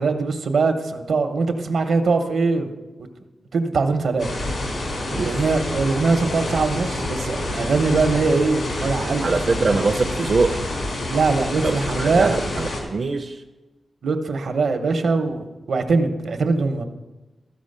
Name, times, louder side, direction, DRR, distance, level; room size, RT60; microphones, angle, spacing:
voice 1, 0.0-2.7 3.5-4.3 5.1-9.3 11.1-12.3 14.0-16.8, right 4 dB, 80° right, 7 dB, 0.9 m, -21 dB
sound 1, 4.2-12.8, left 1 dB, 70° left, 2.8 m, -27 dB
voice 2, 9.2-10.6 11.6-13.4, right 3 dB, 55° right, 4 dB, 0.5 m, -23 dB
13.5 x 5.1 x 6.6 m, 1.1 s
wide cardioid pair, 85°, 0 cm